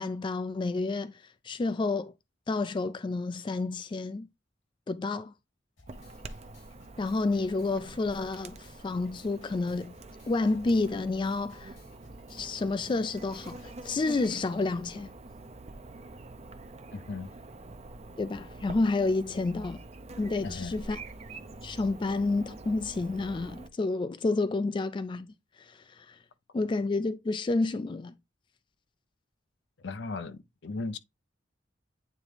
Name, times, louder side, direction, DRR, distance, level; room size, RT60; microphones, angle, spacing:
voice 1, 0.0-2.1 2.5-4.3 4.9-5.3 7.0-9.9 10.3-11.8 12.3-15.1 18.2-19.8 20.2-21.0 21.6-25.3 25.6-26.2 26.5-28.2, left 3 dB, 25° left, 0.3 m, -30 dB
sound 1, 5.8-14.1, equal, 85° left, 2.8 m, -57 dB
Chirp tweet / Buzz, 5.9-23.7, right 2 dB, 35° right, 0.6 m, -46 dB
voice 2, 16.9-17.3 19.3-19.4 20.4-20.8 29.8-31.0, left 3 dB, 65° left, 0.6 m, -37 dB
8.8 x 3.6 x 3.3 m
head